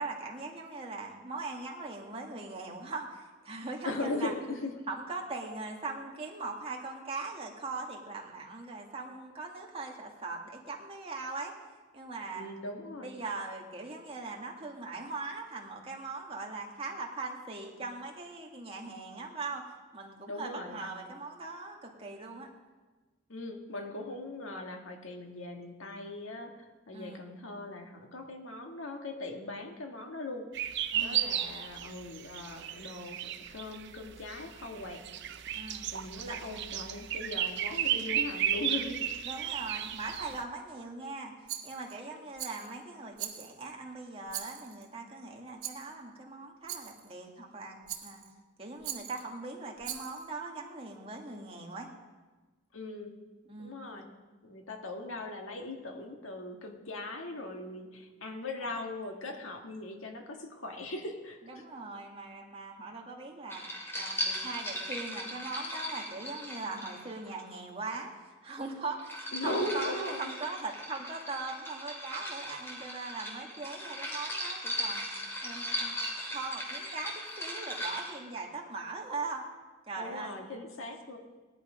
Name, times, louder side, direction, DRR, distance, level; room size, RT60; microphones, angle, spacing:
voice 1, 0.0-4.3 4.9-11.5 11.9-12.5 13.0-19.6 19.9-22.5 26.9-27.2 30.9-31.3 35.5-35.8 36.3-36.4 39.2-41.3 41.6-47.8 48.0-48.2 48.6-51.9 53.5-53.8 58.6-58.7 61.6-63.7 64.0-75.0 75.4-76.0 76.3-79.4 79.9-80.4, right 3 dB, 25° right, 0 dB, 2.0 m, -40 dB
voice 2, 3.8-4.8 12.3-13.2 20.3-20.8 23.3-30.5 31.0-35.1 35.9-39.0 52.7-53.1 53.6-54.1 54.4-61.6 69.3-70.3 80.0-81.2, left 2 dB, 70° left, 3 dB, 1.8 m, -39 dB
sound 1, 30.5-40.4, right 10 dB, 55° right, 0.7 m, -34 dB
Rattle, 41.5-42.0 42.4-42.7 43.2-43.7 44.3-44.9 45.6-45.9 46.7-47.1 47.9-48.3 48.8-49.3 49.8-50.3, right 11 dB, 80° right, 1.6 m, -41 dB
sound 2, 63.5-67.4 68.7-78.2, equal, 10° left, 2.9 m, -38 dB
18.0 x 11.0 x 5.1 m, 1.3 s
head